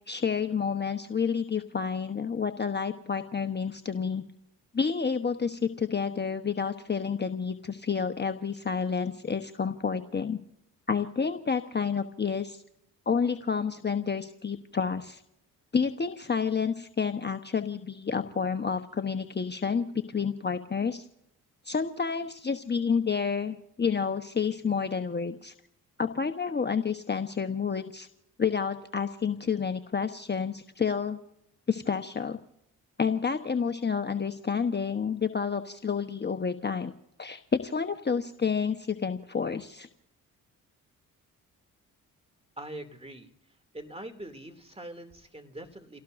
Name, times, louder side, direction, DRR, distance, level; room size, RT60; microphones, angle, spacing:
voice 1, 0.1-4.2 4.7-10.4 10.9-12.6 13.1-15.2 15.7-21.0 21.6-25.5 26.0-28.1 28.4-31.2 31.7-32.4 33.0-36.9 37.2-39.9, left 6 dB, 25° left, 7 dB, 1.1 m, -29 dB
voice 2, 42.6-43.3 43.7-46.0, right 1 dB, 15° right, 7 dB, 2.7 m, -43 dB
29.5 x 18.0 x 2.6 m, 0.80 s
hypercardioid pair, 45°, 42 cm